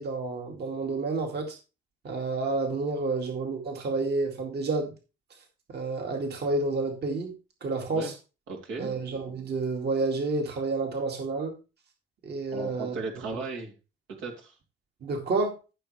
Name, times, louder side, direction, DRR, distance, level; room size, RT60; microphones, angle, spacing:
voice 1, 0.0-1.6 2.0-4.9 5.7-7.3 7.6-8.1 8.8-11.5 12.2-12.9 15.0-15.6, right 3 dB, 55° right, 2.3 m, -29 dB
voice 2, 8.5-8.9 12.5-13.7 14.2-14.5, right 4 dB, 90° right, 3.1 m, -36 dB
14.5 x 6.5 x 3.3 m
cardioid pair, 90°, 20 cm